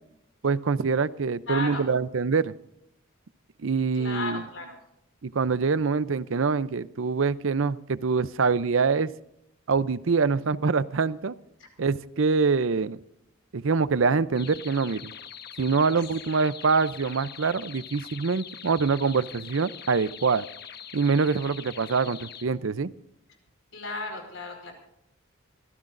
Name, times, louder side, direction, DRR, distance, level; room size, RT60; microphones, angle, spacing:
voice 1, 0.4-2.5 3.6-4.4 5.2-9.1 9.7-11.4 11.8-13.0 13.5-15.1 15.6-20.4 20.9-22.9, right 4 dB, 70° right, 16 dB, 0.6 m, -25 dB
voice 2, 1.5-1.8 4.0-4.8 11.6-11.7 16.0-16.1 23.7-24.7, left 3 dB, 65° left, 4 dB, 4.8 m, -34 dB
sound 1, 14.3-22.4, left 8 dB, 50° left, 1.2 m, -43 dB
25.0 x 15.0 x 2.6 m, 0.78 s
head